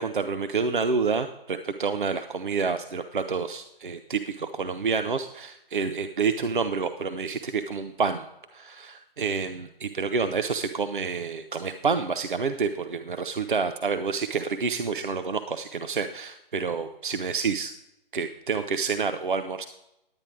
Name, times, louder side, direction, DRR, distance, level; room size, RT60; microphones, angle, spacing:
voice 1, 0.0-8.3 8.5-17.7 18.1-19.6, right 5 dB, 60° right, 9 dB, 0.7 m, -28 dB
10.5 x 8.7 x 4.8 m, 0.87 s
figure-of-eight pair, 145°, 29 cm